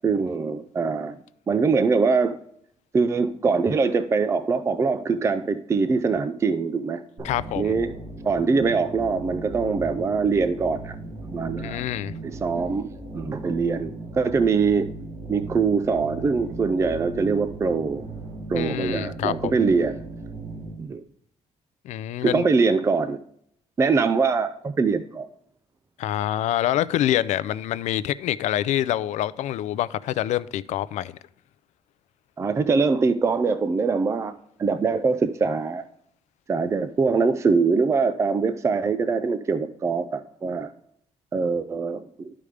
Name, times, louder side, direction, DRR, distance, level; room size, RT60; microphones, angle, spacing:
voice 1, 0.0-1.2 1.5-2.4 2.9-7.0 7.6-8.0 8.2-11.0 11.2-11.8 12.2-12.9 13.1-14.9 15.3-18.1 18.5-20.0 20.8-21.0 22.2-23.2 23.8-25.3 32.4-34.3 34.6-35.8 36.5-40.7 41.3-42.3, right 4 dB, 25° right, 0.4 m, -23 dB
voice 2, 7.2-7.8 11.6-12.1 18.5-19.6 21.8-22.5 26.0-31.1, left 12 dB, 85° left, 0.4 m, -26 dB
sound 1, 7.2-20.7, right 3 dB, 60° right, 3.5 m, -37 dB
12.5 x 5.0 x 3.3 m
cardioid pair, 145°, 12 cm